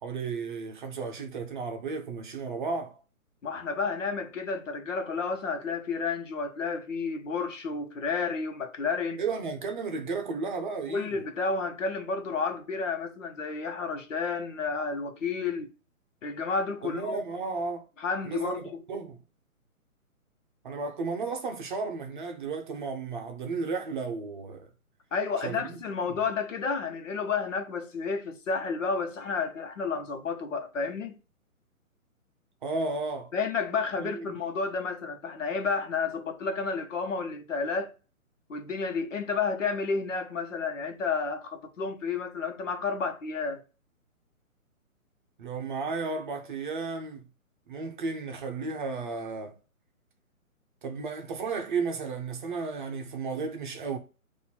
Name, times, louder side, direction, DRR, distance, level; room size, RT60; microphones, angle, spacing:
voice 1, 0.0-3.0 9.2-11.3 16.8-17.8 18.2-19.2 20.6-24.7 25.4-25.8 32.6-33.3 34.0-34.3 45.4-47.3 47.7-49.5 50.8-54.0, right 4 dB, 35° right, 0.8 m, -33 dB
voice 2, 3.4-9.2 10.9-15.7 16.2-17.2 18.0-18.8 25.1-31.2 33.3-37.9 38.5-43.6, left 4 dB, 60° left, 1.2 m, -31 dB
4.2 x 2.7 x 4.3 m
hypercardioid pair, 145°, 43 cm